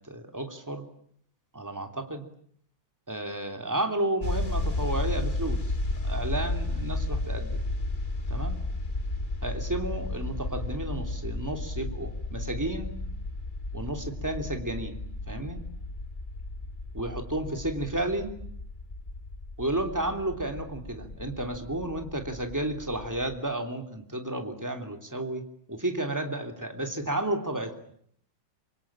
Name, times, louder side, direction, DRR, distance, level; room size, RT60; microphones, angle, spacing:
voice 1, 0.1-0.8 1.5-2.2 3.1-5.6 6.0-7.6 8.3-8.6 9.4-12.9 13.7-15.0 15.3-15.6 16.9-18.3 19.6-25.4 25.7-27.7, right 1 dB, 10° right, 5 dB, 2.9 m, -32 dB
sound 1, 4.2-23.4, left 2 dB, 25° left, 2.2 m, -33 dB
26.5 x 24.5 x 8.9 m, 0.66 s
omnidirectional pair, 2.1 m